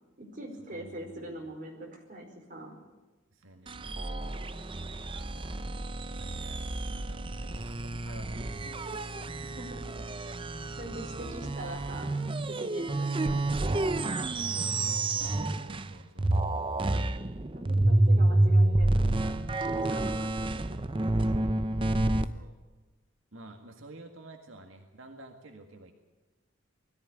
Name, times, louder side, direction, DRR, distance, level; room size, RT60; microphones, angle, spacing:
voice 1, 0.2-2.7 9.4-9.9 10.8-14.0 17.5-19.3 19.6-20.7, right 1 dB, 45° right, 1 dB, 4.8 m, -43 dB
voice 2, 0.7-1.4 3.3-4.4 5.1-5.6 6.1-9.4 11.1-11.2 14.4-16.6 22.2-22.6 23.3-25.9, right 2 dB, 85° right, 4 dB, 1.9 m, -51 dB
sound 1, 3.7-15.9 16.2-22.2, right 2 dB, 25° right, 0.7 m, -29 dB
20.5 x 14.0 x 9.9 m, 1.2 s
head